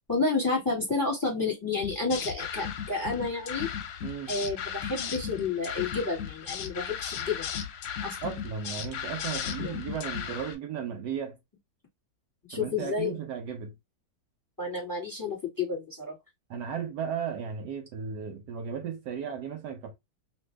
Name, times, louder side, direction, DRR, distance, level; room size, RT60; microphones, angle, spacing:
voice 1, 0.1-3.7 4.3-7.4 8.0-8.2 9.6-9.7 12.5-13.1 14.6-16.1, left 4 dB, 10° left, 1.3 m, -30 dB
sound 1, 1.8-10.5, left 8 dB, 70° left, 1.1 m, -36 dB
voice 2, 4.0-4.3 8.2-11.4 12.5-13.7 16.5-19.9, right 7 dB, 75° right, 1.1 m, -35 dB
3.0 x 2.6 x 3.1 m
omnidirectional pair, 2.0 m